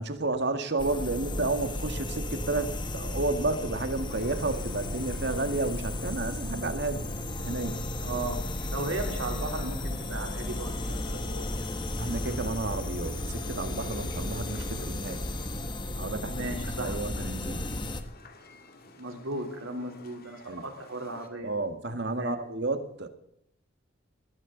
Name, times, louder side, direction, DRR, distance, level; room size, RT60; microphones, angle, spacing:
voice 1, 0.0-7.8 12.0-15.2 16.0-17.6 20.5-20.6 21.4-23.1, right 2 dB, 55° right, 8 dB, 1.7 m, -31 dB
sound 1, 0.8-18.0, left 1 dB, 20° left, 1.1 m, -34 dB
sound 2, 4.1-21.3, left 2 dB, 45° left, 2.2 m, -52 dB
voice 2, 8.0-11.7 16.3-17.0 19.0-21.6 22.0-22.3, right 2 dB, 75° right, 3 dB, 3.6 m, -36 dB
20.0 x 16.5 x 3.9 m, 0.71 s
head